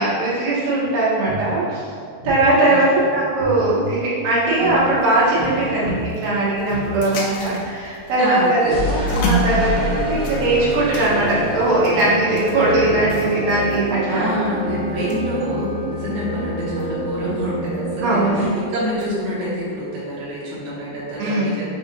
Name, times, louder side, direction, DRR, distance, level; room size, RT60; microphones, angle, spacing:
voice 1, 0.0-1.8 2.2-14.3 18.0-18.5 21.2-21.5, right 2 dB, 85° right, -8 dB, 3.2 m, -19 dB
sound 1, 0.8-0.9 1.2-1.4 2.2-2.4 3.4-3.9 4.6-4.8 5.3-5.5 5.8-6.0 6.7-6.8 8.6-18.5, equal, 50° right, 1.4 m, -27 dB
voice 2, 2.6-3.1 8.2-9.1 14.1-21.6, equal, 65° right, -9 dB, 2.9 m, -27 dB
sound 2, 4.4-19.3, equal, 80° left, 1.9 m, -33 dB
Wind instrument woodwind instrument, 9.8-19.4, left 1 dB, 50° left, 1.8 m, -36 dB
7.6 x 2.6 x 2.7 m, 2.3 s
omnidirectional pair, 4.3 m